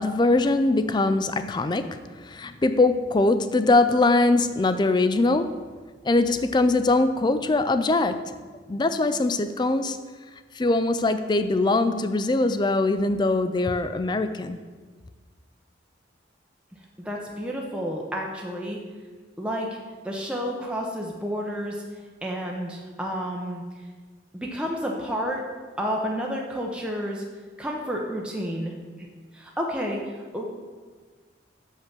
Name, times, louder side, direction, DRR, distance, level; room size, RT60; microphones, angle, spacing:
voice 1, 0.0-5.6 6.0-8.3 8.7-10.0 10.5-14.6, left 2 dB, 25° left, 11 dB, 0.3 m, -22 dB
voice 2, 17.0-18.8 19.4-19.7 20.0-21.8 22.2-23.6 24.3-25.4 25.8-27.2 27.6-29.1 29.3-30.4, equal, 5° right, -1 dB, 0.7 m, -30 dB
6.8 x 5.5 x 5.9 m, 1.4 s
head